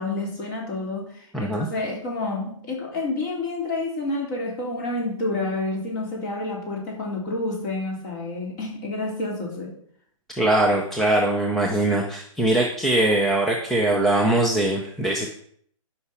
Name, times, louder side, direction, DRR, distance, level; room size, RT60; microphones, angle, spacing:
voice 1, 0.0-9.8, left 2 dB, 35° left, -2 dB, 3.6 m, -29 dB
voice 2, 1.3-1.7 10.3-15.3, right 1 dB, ahead, -1 dB, 0.4 m, -21 dB
11.5 x 5.8 x 5.6 m, 0.63 s
hypercardioid pair, 170°, 17 cm